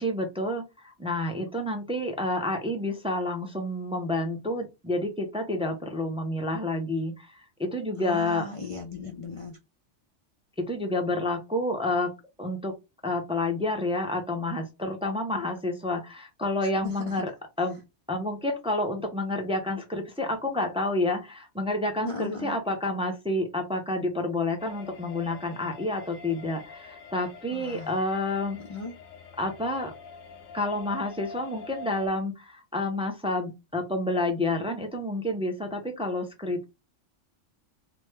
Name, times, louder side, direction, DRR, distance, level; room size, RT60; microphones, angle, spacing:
voice 1, 0.0-8.5 10.6-12.7 13.0-17.3 17.6-17.8 18.1-28.6 29.4-29.9 30.5-36.6, left 2 dB, 5° right, 0.4 m, -29 dB
voice 2, 8.0-9.6 16.6-17.2 22.1-22.6 27.5-28.0 28.7-28.9, left 3 dB, 60° left, 0.3 m, -37 dB
sound 1, 24.6-32.1, left 4 dB, 75° left, 1.0 m, -45 dB
3.3 x 2.1 x 3.2 m
omnidirectional pair, 1.3 m